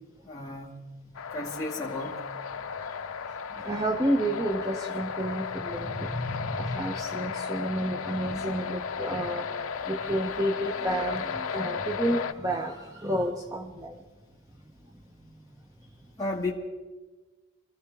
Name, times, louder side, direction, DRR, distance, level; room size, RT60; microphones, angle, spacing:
voice 1, 0.2-0.7 1.3-2.2 16.2-16.5, left 2 dB, 15° left, -5 dB, 2.1 m, -33 dB
sound 1, 1.1-12.3, left 6 dB, 65° left, 0.6 m, -35 dB
voice 2, 3.5-14.0, right 1 dB, 15° right, 3 dB, 0.7 m, -30 dB
25.5 x 14.5 x 3.5 m, 1.2 s
head